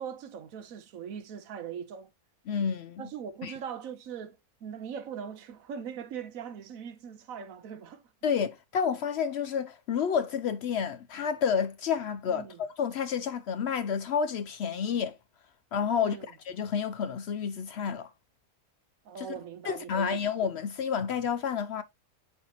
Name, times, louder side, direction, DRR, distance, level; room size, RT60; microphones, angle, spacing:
voice 1, 0.0-2.1 3.0-8.0 12.3-12.6 15.9-16.3 19.0-20.2, right 7 dB, 70° right, 1.2 m, -40 dB
voice 2, 2.5-3.0 3.4-3.5 8.2-15.2 15.7-16.2 16.4-18.1 19.2-19.3 19.6-21.8, left 7 dB, 70° left, 0.6 m, -30 dB
8.1 x 4.3 x 2.8 m
omnidirectional pair, 1.6 m